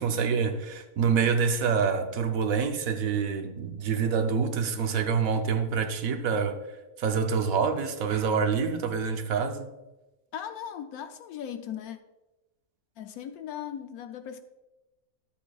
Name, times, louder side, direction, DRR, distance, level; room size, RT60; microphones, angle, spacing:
voice 1, 0.0-6.6 7.0-9.7, right 6 dB, 75° right, 1.1 m, -26 dB
voice 2, 10.3-12.0 13.0-14.4, left 9 dB, 85° left, 1.1 m, -38 dB
11.5 x 7.1 x 2.3 m
omnidirectional pair, 1.5 m